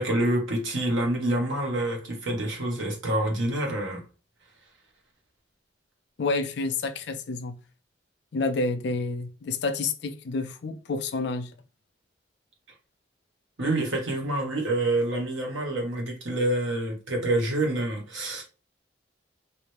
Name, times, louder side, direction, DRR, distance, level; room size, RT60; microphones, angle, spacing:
voice 1, 0.0-4.0 13.6-18.4, right 1 dB, 90° right, 1.3 m, -27 dB
voice 2, 6.2-7.6 8.3-11.5, left 3 dB, 60° left, 0.4 m, -29 dB
3.2 x 2.6 x 3.2 m
head